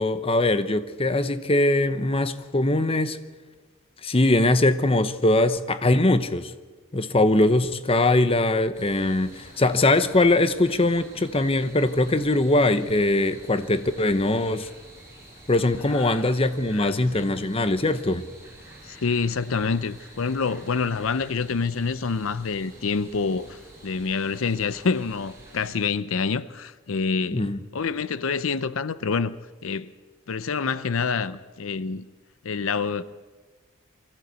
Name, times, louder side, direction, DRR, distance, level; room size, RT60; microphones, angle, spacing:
voice 1, 0.0-3.2 4.0-6.5 6.9-14.7 15.5-18.3 27.3-27.6, left 2 dB, 25° left, 0.8 m, -21 dB
sound 1, 8.7-25.8, right 1 dB, 15° right, 6.4 m, -48 dB
voice 2, 15.9-16.2 16.7-17.3 18.8-29.4 29.6-29.9 30.3-32.1 32.4-33.0, left 5 dB, 75° left, 0.6 m, -27 dB
23.0 x 14.5 x 8.2 m
head